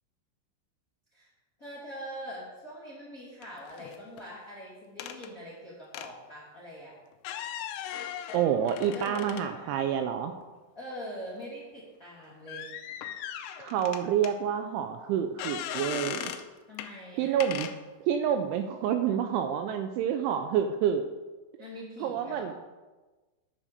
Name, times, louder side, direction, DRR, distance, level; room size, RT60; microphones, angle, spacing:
voice 1, 1.6-7.0 8.9-9.8 10.7-12.7 16.7-17.4 21.6-22.5, equal, 25° left, -7 dB, 1.8 m, -43 dB
sound 1, 3.4-4.2 5.0-5.3 5.9-6.1 7.1-9.9 10.4-10.5 12.5-14.3 15.4-16.5 16.8-16.9 17.4-17.8, left 10 dB, 85° left, 3.0 m, -38 dB
voice 2, 8.3-10.3 13.6-16.3 17.2-17.7 18.1-21.1 22.0-22.5, right 9 dB, 80° right, 7 dB, 2.8 m, -28 dB
11.0 x 6.2 x 6.6 m, 1.2 s
omnidirectional pair, 5.7 m